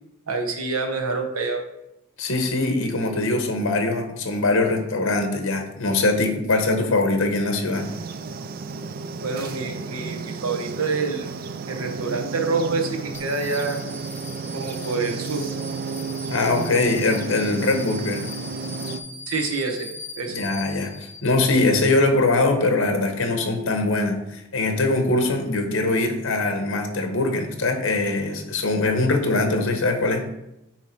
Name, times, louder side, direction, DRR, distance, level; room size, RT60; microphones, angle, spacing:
voice 1, 0.3-1.6 9.2-11.3 11.7-13.8 14.5-15.4 19.3-20.4, right 4 dB, 85° right, 3 dB, 1.1 m, -27 dB
voice 2, 2.2-7.9 16.3-18.3 20.3-30.3, left 2 dB, 65° left, 5 dB, 1.0 m, -22 dB
sound 1, 7.7-19.0, right 4 dB, 45° right, 0.4 m, -33 dB
sound 2, 13.1-21.6, left 2 dB, 10° left, 0.9 m, -40 dB
9.1 x 3.1 x 4.5 m, 0.86 s
head